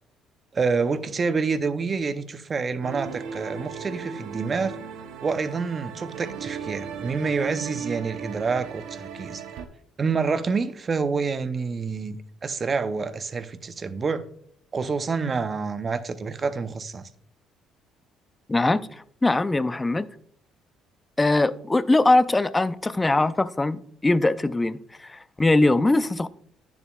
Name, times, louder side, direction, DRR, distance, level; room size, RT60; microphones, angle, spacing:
voice 1, 0.5-4.8 5.2-9.4 10.0-12.2 12.4-14.2 14.7-17.1, right 4 dB, 35° right, 0.6 m, -27 dB
sound 1, 2.8-9.7, right 7 dB, 80° right, 0.7 m, -36 dB
voice 2, 18.5-20.1 21.2-26.3, left 2 dB, 15° left, 0.4 m, -22 dB
10.0 x 7.0 x 2.3 m
cardioid pair, 105°, 0 cm